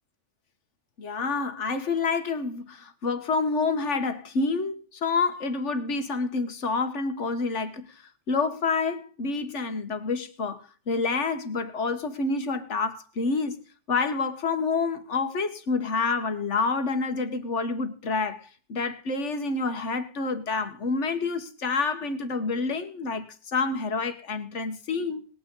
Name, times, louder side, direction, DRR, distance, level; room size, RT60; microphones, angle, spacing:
voice 1, 1.0-7.9 8.3-10.6 10.9-25.3, left 4 dB, 70° left, 1.6 m, -28 dB
20.0 x 9.1 x 3.8 m
omnidirectional pair, 1.3 m